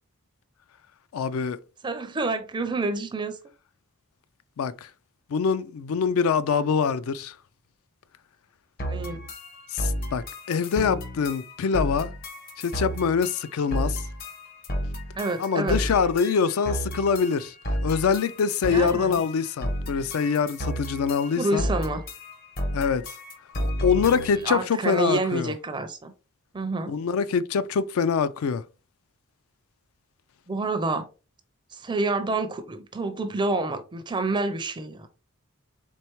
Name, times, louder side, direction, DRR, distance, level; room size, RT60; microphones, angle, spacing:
voice 1, 1.1-1.6 4.6-4.9 5.3-7.4 9.7-12.1 12.6-14.0 15.4-21.7 22.7-23.1 23.6-25.5 26.9-28.6, left 6 dB, 65° left, 0.3 m, -24 dB
voice 2, 1.8-3.4 8.8-9.2 15.2-15.8 18.7-19.2 21.4-22.0 24.4-26.1 26.5-26.9 30.5-31.1 31.7-35.1, right 2 dB, 20° right, 0.4 m, -28 dB
sound 1, 8.8-24.5, equal, 40° left, 0.7 m, -32 dB
4.5 x 3.4 x 3.0 m
head